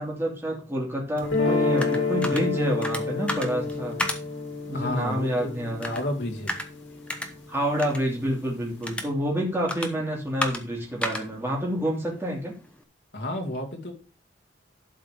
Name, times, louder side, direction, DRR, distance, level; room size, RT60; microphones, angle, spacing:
voice 1, 0.0-4.0 4.7-6.0 7.5-12.5, equal, 10° right, -2 dB, 2.8 m, -28 dB
sound 1, 1.2-7.3, left 3 dB, 85° left, 2.5 m, -29 dB
sound 2, 1.2-12.8, left 1 dB, 5° left, 0.9 m, -36 dB
voice 2, 4.7-5.5 5.9-6.6 13.1-13.9, left 1 dB, 60° left, 1 dB, 2.4 m, -31 dB
11.5 x 4.8 x 5.0 m, 0.34 s
head